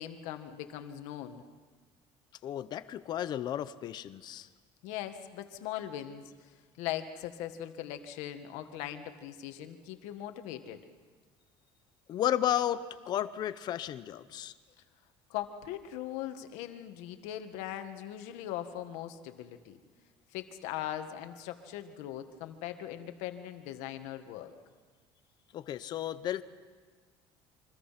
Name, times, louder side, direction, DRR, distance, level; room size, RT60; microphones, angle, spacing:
voice 1, 0.0-1.4 4.8-6.5 6.8-10.9 15.3-19.8 20.3-24.5, left 11 dB, 85° left, 7 dB, 1.9 m, -40 dB
voice 2, 2.4-4.5 12.1-14.5 25.5-26.4, left 11 dB, 40° left, 13 dB, 0.8 m, -33 dB
28.5 x 24.5 x 5.9 m, 1.5 s
cardioid pair, 175°, 11 cm